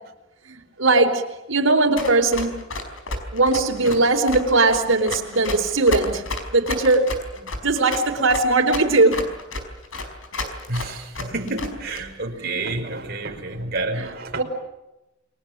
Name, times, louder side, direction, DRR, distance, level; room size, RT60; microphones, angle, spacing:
voice 1, 0.5-1.2 1.5-2.5 3.3-6.2 6.5-9.2 12.4-12.6 14.4-14.5, right 2 dB, 80° right, 1 dB, 4.2 m, -19 dB
Run, 2.0-12.0, left 2 dB, 85° left, 4.9 m, -31 dB
voice 2, 10.7-14.4, right 2 dB, 50° right, 3 dB, 4.8 m, -29 dB
29.0 x 23.5 x 7.5 m, 0.95 s
head